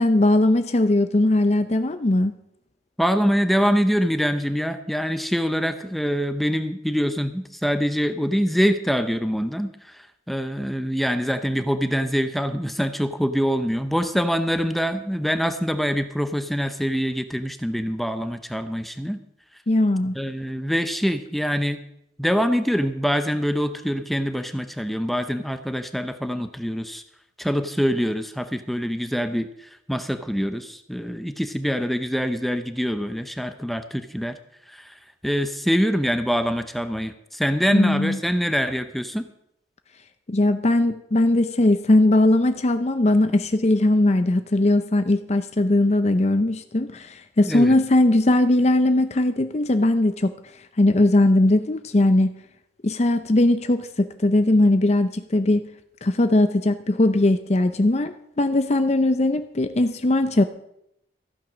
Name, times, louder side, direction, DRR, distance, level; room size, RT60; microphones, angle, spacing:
voice 1, 0.0-2.3 19.7-20.1 37.7-38.2 40.3-50.3 50.8-52.3 52.8-55.7 56.0-60.4, left 1 dB, 35° left, 9 dB, 0.6 m, -19 dB
voice 2, 3.0-9.7 10.3-19.2 20.1-21.8 22.2-27.0 27.4-29.5 29.9-34.4 34.8-34.9 35.2-39.3 47.4-47.7, equal, ahead, 9 dB, 0.7 m, -24 dB
14.5 x 9.1 x 6.2 m, 0.78 s
head